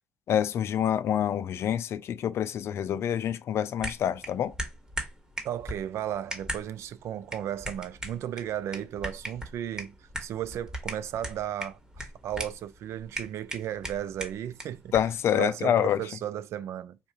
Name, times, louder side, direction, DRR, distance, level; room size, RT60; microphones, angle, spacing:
voice 1, 0.3-4.5 14.9-16.0, left 10 dB, 65° left, 0.3 m, -27 dB
sound 1, 3.8-15.2, right 1 dB, 15° right, 1.3 m, -40 dB
voice 2, 5.4-14.9 15.3-17.0, right 11 dB, 70° right, 0.3 m, -35 dB
3.6 x 2.4 x 2.9 m
supercardioid pair, 65°, 5 cm